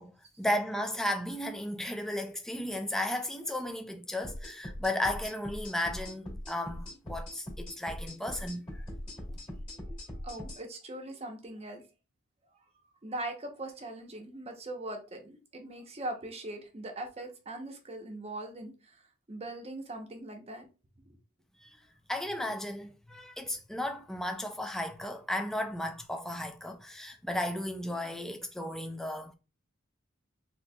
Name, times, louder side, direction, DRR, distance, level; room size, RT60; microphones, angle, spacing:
voice 1, 0.0-8.8 21.6-21.8 22.1-29.3, left 1 dB, ahead, 0.4 m, -34 dB
sound 1, 4.2-10.6, equal, 25° left, 1.4 m, -41 dB
voice 2, 10.2-11.8 13.0-19.0 19.3-20.7, right 1 dB, 30° right, 0.7 m, -41 dB
4.2 x 2.9 x 2.2 m
head